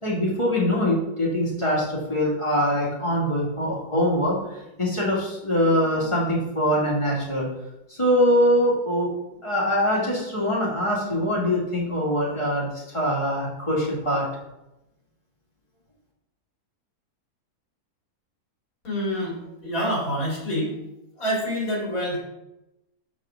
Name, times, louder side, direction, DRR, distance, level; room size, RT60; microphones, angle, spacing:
voice 1, 0.0-7.5 7.9-9.1 9.4-14.3, equal, 20° left, -5 dB, 2.3 m, -23 dB
voice 2, 18.8-19.4 19.6-20.8 21.2-22.2, equal, 60° left, -4 dB, 3.0 m, -26 dB
7.2 x 6.8 x 3.8 m, 0.91 s
omnidirectional pair, 1.7 m